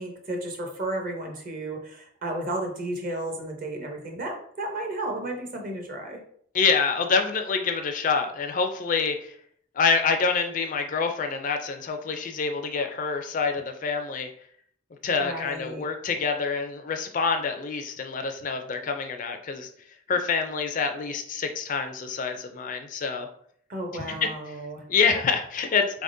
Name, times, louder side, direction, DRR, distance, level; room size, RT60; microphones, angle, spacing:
voice 1, 0.0-6.2 15.2-15.8 23.7-24.8, right 1 dB, 45° right, 2 dB, 0.8 m, -33 dB
voice 2, 6.5-9.3 9.8-14.3 15.0-19.7 20.1-23.3 24.2-24.3 24.9-26.0, left 5 dB, 40° left, 6 dB, 0.3 m, -26 dB
4.0 x 3.5 x 2.6 m, 0.63 s
head